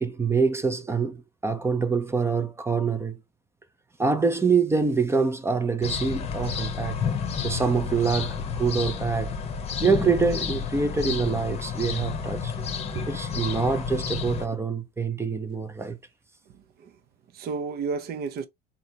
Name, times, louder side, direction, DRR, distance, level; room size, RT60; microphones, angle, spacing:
voice 1, 0.0-3.2 4.0-7.0 7.4-9.3 9.8-12.5 13.1-16.0, right 5 dB, 10° right, 0.5 m, -25 dB
sound 1, 5.8-14.5, left 6 dB, 30° left, 0.8 m, -30 dB
voice 2, 12.6-13.4 16.8-16.9 17.3-18.5, right 5 dB, 50° right, 0.7 m, -33 dB
4.1 x 3.3 x 2.8 m
cardioid pair, 140°, 21 cm